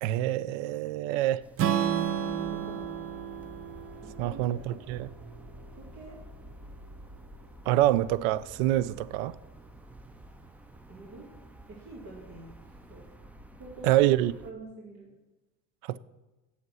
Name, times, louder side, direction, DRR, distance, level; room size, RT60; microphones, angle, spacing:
voice 1, 0.0-1.4 4.2-5.1 7.7-9.4 13.8-14.3 15.8-16.0, right 14 dB, 70° right, 0.5 m, -26 dB
sound 1, 1.4-14.5, right 1 dB, 5° right, 0.3 m, -50 dB
Strum, 1.6-5.8, right 9 dB, 35° right, 0.7 m, -32 dB
voice 2, 2.3-2.8 4.1-4.4 5.8-6.2 10.9-11.3 11.7-12.5 12.9-13.0 13.6-14.1 14.4-15.1, right 2 dB, 50° right, 2.4 m, -45 dB
8.0 x 6.7 x 5.6 m
supercardioid pair, 115°, 40 cm